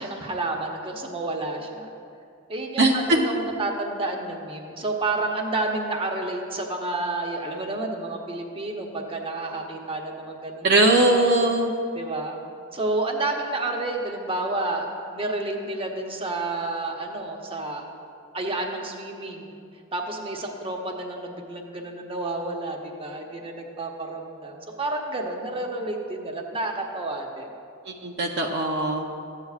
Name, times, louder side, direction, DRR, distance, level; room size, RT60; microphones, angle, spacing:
voice 1, 0.0-1.9 2.5-10.7 11.1-11.2 11.9-12.4 12.7-14.9 15.1-17.8 18.3-19.5 19.9-27.5, right 2 dB, 25° right, 1 dB, 0.8 m, -30 dB
voice 2, 10.6-11.7 28.0-29.1, right 2 dB, 55° right, 1 dB, 0.5 m, -20 dB
14.0 x 8.2 x 2.4 m, 2.4 s
head